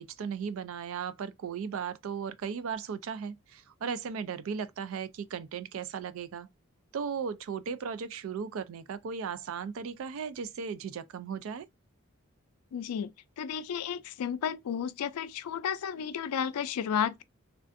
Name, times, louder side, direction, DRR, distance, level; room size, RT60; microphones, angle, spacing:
voice 1, 0.0-6.5 6.9-11.7, right 6 dB, 65° right, 0.3 m, -36 dB
voice 2, 12.7-17.2, left 8 dB, 90° left, 0.4 m, -33 dB
3.3 x 2.4 x 2.5 m
head